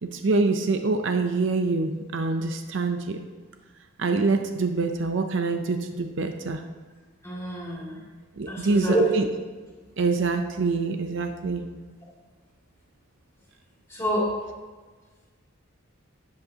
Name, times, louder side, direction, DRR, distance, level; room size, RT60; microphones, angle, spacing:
voice 1, 0.0-3.2 4.0-6.6 8.4-9.3 10.0-11.7, right 3 dB, 55° right, 6 dB, 0.5 m, -25 dB
voice 2, 7.2-7.9 8.5-9.0 13.9-14.2, right 1 dB, 15° left, -6 dB, 2.6 m, -26 dB
12.5 x 8.0 x 2.8 m, 1.4 s
head